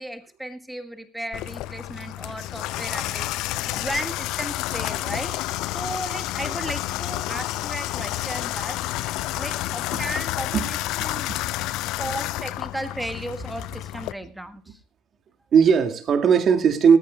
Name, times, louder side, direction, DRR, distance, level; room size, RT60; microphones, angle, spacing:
voice 1, 0.0-5.4 5.7-8.8 9.4-11.3 12.0-14.8, right 1 dB, 5° right, 1.6 m, -35 dB
Water tap faucet / Bathtub (filling or washing), 1.3-14.1, left 16 dB, 55° left, 0.5 m, -30 dB
voice 2, 11.0-11.3 11.7-11.9 15.5-17.0, right 6 dB, 40° right, 2.1 m, -19 dB
18.5 x 14.0 x 2.3 m
hypercardioid pair, 70°, 0 cm